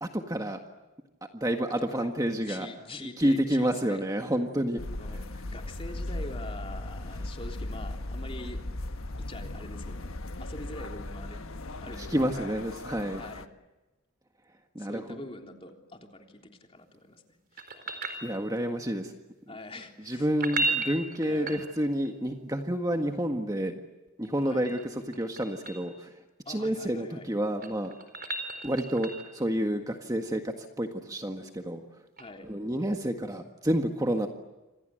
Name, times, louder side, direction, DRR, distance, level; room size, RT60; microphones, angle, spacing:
voice 1, 0.0-0.6 1.2-2.7 3.2-4.8 12.0-13.2 14.7-15.2 18.2-19.1 20.0-23.8 24.2-26.1 26.5-27.9 28.6-31.8 32.4-34.3, equal, 15° right, 4 dB, 1.7 m, -29 dB
voice 2, 2.5-4.0 4.9-5.2 5.5-8.6 9.2-10.1 10.4-11.5 11.8-12.5 13.2-13.4 14.8-17.2 17.5-17.6 18.6-18.9 19.5-20.4 20.7-20.8 21.3-21.6 24.4-24.7 26.5-27.3 32.2-32.5, left 2 dB, 25° left, 3 dB, 3.5 m, -44 dB
sound 1, 4.8-13.5, left 1 dB, 85° left, 1.3 m, -37 dB
sound 2, 17.6-18.8 20.3-22.1 24.2-25.9 27.3-29.4 32.2-32.3, right 3 dB, 45° right, 4.1 m, -35 dB
28.0 x 27.0 x 7.8 m, 1.1 s
head